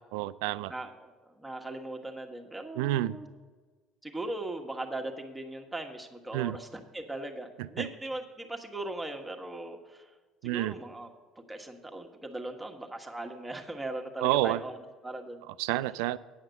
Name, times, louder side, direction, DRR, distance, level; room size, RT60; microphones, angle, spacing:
voice 1, 0.1-0.7 2.8-3.2 6.3-6.6 7.6-7.9 10.4-10.7 14.2-14.6 15.6-16.2, right 16 dB, 85° right, 15 dB, 0.3 m, -29 dB
voice 2, 0.7-1.1 1.4-3.3 4.0-10.1 10.4-11.1 11.5-14.8 15.0-15.4, right 2 dB, 10° right, 2 dB, 1.4 m, -39 dB
9.3 x 5.7 x 7.8 m, 1.4 s
supercardioid pair, 80°, 0 cm